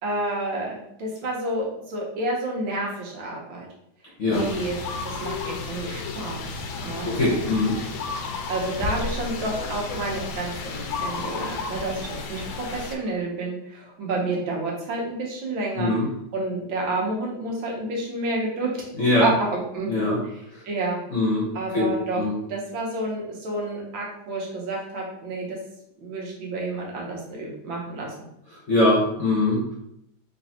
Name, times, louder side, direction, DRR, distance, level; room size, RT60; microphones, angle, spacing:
voice 1, 0.0-3.7 4.3-4.8 5.0-6.5 6.8-7.1 8.5-15.9 16.3-18.7 19.2-19.9 20.6-21.0 21.5-22.2 22.5-25.6 26.0-28.3, right 2 dB, 80° right, -2 dB, 1.7 m, -29 dB
sound 1, 4.3-13.0, left 4 dB, 85° left, 1.4 m, -32 dB
voice 2, 7.1-7.8 15.7-16.1 19.0-19.2 19.9-20.2 20.5-20.6 21.1-21.5 21.7-21.9 22.1-22.3 28.5-29.7, left 2 dB, 50° left, -6 dB, 1.0 m, -22 dB
3.8 x 3.2 x 2.8 m, 0.76 s
omnidirectional pair, 2.2 m